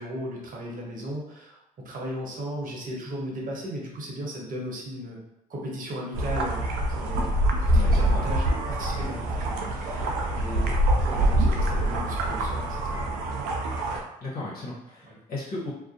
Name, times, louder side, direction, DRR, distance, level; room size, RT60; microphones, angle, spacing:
voice 1, 0.0-1.6 1.8-5.2 5.5-6.6 6.9-7.3 7.6-10.7 11.1-13.1 15.1-15.2, equal, 45° right, -2 dB, 0.9 m, -36 dB
sound 1, 6.1-14.0, right 1 dB, 75° right, 0.4 m, -25 dB
voice 2, 7.7-8.4 9.0-9.1 10.5-10.8 14.2-15.7, left 2 dB, 55° left, -7 dB, 0.9 m, -36 dB
2.4 x 2.0 x 2.6 m, 0.89 s
hypercardioid pair, 60°, 19 cm